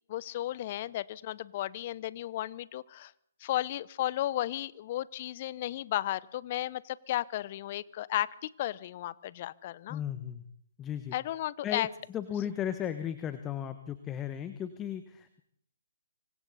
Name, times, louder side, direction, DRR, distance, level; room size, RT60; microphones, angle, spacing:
voice 1, 0.1-3.1 3.4-10.0 11.1-11.9, left 14 dB, 40° left, 20 dB, 0.8 m, -34 dB
voice 2, 9.9-10.4 10.8-11.1 11.6-11.9 12.1-15.4, left 10 dB, 15° left, 11 dB, 1.2 m, -35 dB
25.5 x 24.5 x 4.2 m, 0.69 s
figure-of-eight pair, 135°, 0 cm